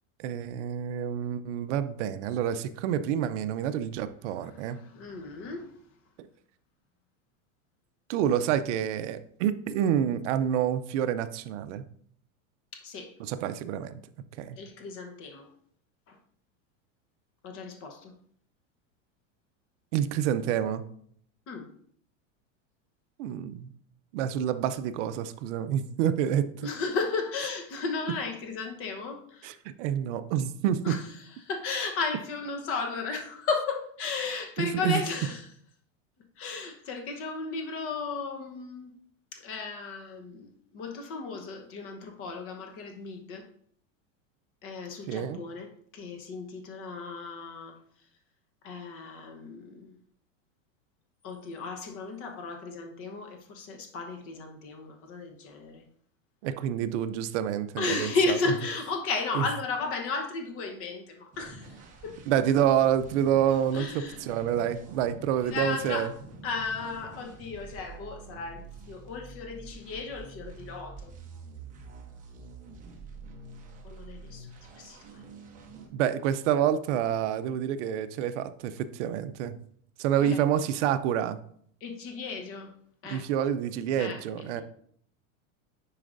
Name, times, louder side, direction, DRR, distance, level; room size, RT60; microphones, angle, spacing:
voice 1, 0.2-4.8 6.2-6.3 8.1-11.8 13.2-14.0 14.4-14.6 19.9-20.8 23.2-23.7 24.1-26.5 29.4-31.0 34.6-35.0 45.1-45.4 56.4-58.4 59.3-59.5 62.3-66.1 75.9-79.6 80.0-81.4 83.0-84.6, right 9 dB, 60° right, 0.6 m, -28 dB
voice 2, 4.9-5.7 12.7-13.1 14.6-15.5 16.1-16.2 17.4-18.1 21.5-21.7 26.6-29.5 30.8-31.0 31.4-35.4 36.4-38.9 39.3-43.4 44.6-47.7 48.6-49.9 51.2-55.8 57.8-61.7 62.0-62.2 63.7-64.2 65.4-66.1 66.4-71.1 73.8-74.5 74.8-75.0 80.2-80.4 81.8-82.7 83.0-83.2 83.9-84.6, left 4 dB, 35° left, 1.0 m, -34 dB
sound 1, 61.3-75.9, right 3 dB, 20° right, 0.9 m, -47 dB
9.7 x 4.7 x 2.6 m
supercardioid pair, 160°, 40 cm